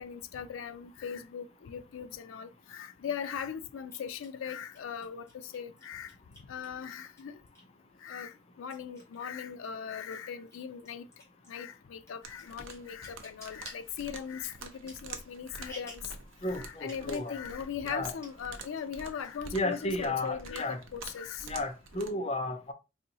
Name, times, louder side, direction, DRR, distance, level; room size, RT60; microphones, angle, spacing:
voice 1, 0.0-6.2 6.5-7.4 8.0-11.1 11.5-16.1 16.5-21.5, left 7 dB, 85° left, 0.4 m, -39 dB
sound 1, 2.1-2.2 3.9-7.8 8.2-9.7 10.0-16.2 16.8-17.3 17.6-17.7 17.9-18.5 18.8-19.3 19.7-20.5, left 1 dB, 15° left, 1.5 m, -53 dB
sound 2, 12.2-22.1, right 4 dB, 85° right, 0.6 m, -48 dB
voice 2, 16.4-17.3 17.8-18.1 19.5-20.8 21.4-22.7, left 2 dB, 30° left, 0.5 m, -33 dB
4.2 x 2.7 x 2.7 m
head